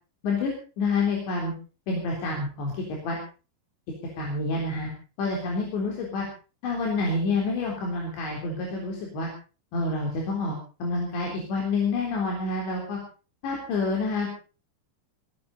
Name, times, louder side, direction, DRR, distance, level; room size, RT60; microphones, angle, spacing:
voice 1, 0.8-1.5 1.9-3.2 4.2-4.9 5.2-6.3 6.6-9.3 9.7-13.0 13.4-14.3, left 3 dB, 90° left, -1 dB, 6.0 m, -28 dB
18.5 x 18.0 x 4.1 m, 0.36 s
omnidirectional pair, 4.9 m